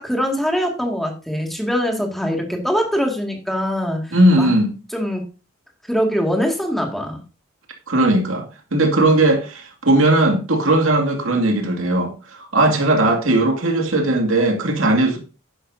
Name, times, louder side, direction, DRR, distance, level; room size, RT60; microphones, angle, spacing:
voice 1, 0.0-4.5 4.9-5.2 5.9-7.2, equal, ahead, 2.1 m, -23 dB
voice 2, 4.1-4.7 7.9-8.5 8.7-15.2, right 2 dB, 80° right, 2.3 m, -17 dB
11.5 x 10.0 x 2.7 m
head